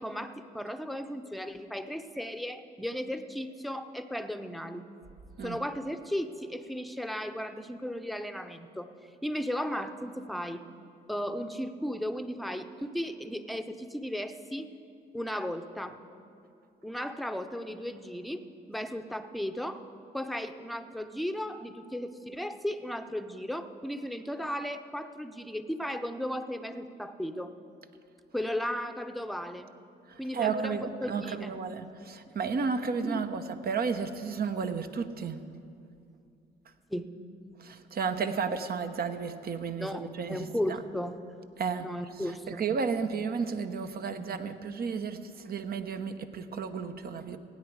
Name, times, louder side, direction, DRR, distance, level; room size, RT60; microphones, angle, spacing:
voice 1, 0.0-4.9 5.4-8.9 9.2-10.6 11.1-14.7 15.1-16.0 16.8-18.4 18.7-19.8 20.1-27.5 28.3-29.7 30.2-31.6 33.0-33.3 36.9-37.1 39.8-41.2 41.8-42.6 44.3-44.4, equal, ahead, 9 dB, 0.8 m, -35 dB
voice 2, 30.1-35.4 37.6-40.8 41.6-41.9 42.5-47.4, right 5 dB, 45° right, 9 dB, 0.9 m, -33 dB
16.5 x 9.5 x 4.8 m, 2.5 s
hypercardioid pair, 55°, 21 cm